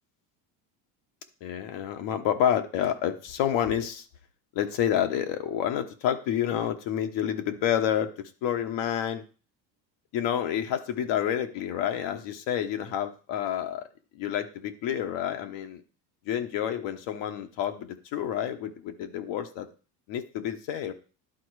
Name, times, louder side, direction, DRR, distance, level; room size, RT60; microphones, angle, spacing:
voice 1, 1.4-4.0 4.5-8.1 8.4-9.2 10.1-13.9 14.1-15.8 16.3-19.7 20.1-20.9, left 10 dB, 65° left, 6 dB, 1.2 m, -29 dB
11.0 x 3.8 x 4.8 m, 0.36 s
supercardioid pair, 85°, 48 cm